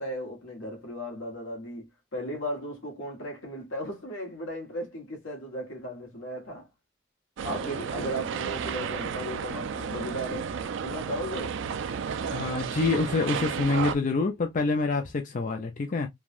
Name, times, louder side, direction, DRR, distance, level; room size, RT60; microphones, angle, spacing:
voice 1, 0.0-6.7 7.4-10.5 10.8-11.6, equal, 80° left, 1.3 m, -36 dB
sound 1, 7.4-14.0, right 6 dB, 65° right, 0.4 m, -32 dB
voice 2, 12.3-16.1, left 3 dB, 40° left, 0.5 m, -27 dB
3.3 x 2.3 x 2.5 m
head